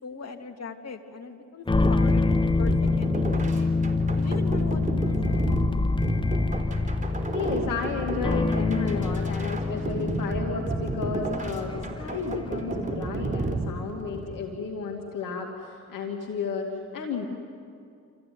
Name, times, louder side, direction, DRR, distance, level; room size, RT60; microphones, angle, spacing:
voice 1, 0.0-3.7 4.2-5.4, left 4 dB, 45° left, 4 dB, 2.7 m, -40 dB
sound 1, 1.7-13.0, left 3 dB, 15° left, 0.8 m, -26 dB
sound 2, 1.8-14.4, right 2 dB, 20° right, 3.8 m, -32 dB
voice 2, 7.3-17.3, left 4 dB, 65° left, 1 dB, 2.3 m, -32 dB
28.0 x 15.0 x 9.4 m, 2.4 s
hypercardioid pair, 45°, 34 cm